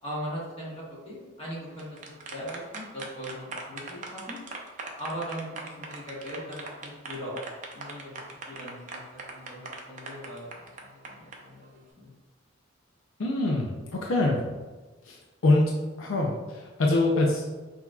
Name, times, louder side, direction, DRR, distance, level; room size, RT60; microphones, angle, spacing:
voice 1, 0.0-4.4 5.0-7.4 7.7-8.2 8.5-12.1, equal, 30° left, -6 dB, 1.4 m, -39 dB
sound 1, 1.6-11.4, right 3 dB, 40° right, 0.6 m, -40 dB
voice 2, 13.2-14.4 15.1-15.2 15.4-15.6 16.0-17.5, left 2 dB, 80° left, -1 dB, 0.5 m, -24 dB
5.7 x 2.8 x 2.3 m, 1.3 s
head